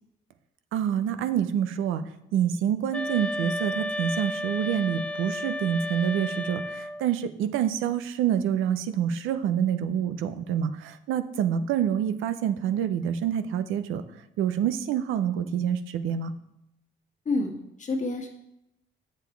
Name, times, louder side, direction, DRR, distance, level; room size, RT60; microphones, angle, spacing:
voice 1, 0.7-2.0 2.3-14.0 14.4-16.3, right 9 dB, 90° right, 10 dB, 0.6 m, -27 dB
sound 1, 2.9-7.1, left 1 dB, 5° left, 0.5 m, -32 dB
voice 2, 17.2-18.3, left 2 dB, 40° left, 2 dB, 1.6 m, -29 dB
7.1 x 6.8 x 4.5 m, 0.83 s
cardioid pair, 90°, 20 cm